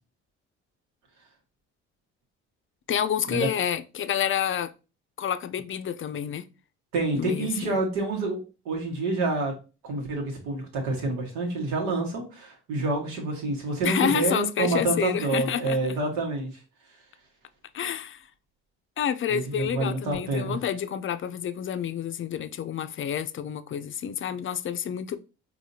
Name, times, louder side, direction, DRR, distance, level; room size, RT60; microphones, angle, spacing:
voice 1, 2.9-4.7 5.2-6.4 7.1-7.7 13.8-16.0 17.7-18.2 19.0-25.2, left 9 dB, 40° left, 0.5 m, -29 dB
voice 2, 6.9-9.5 9.8-16.5 19.3-20.6, right 2 dB, 80° right, 1.5 m, -28 dB
4.9 x 2.7 x 2.7 m
hypercardioid pair, 60°, 33 cm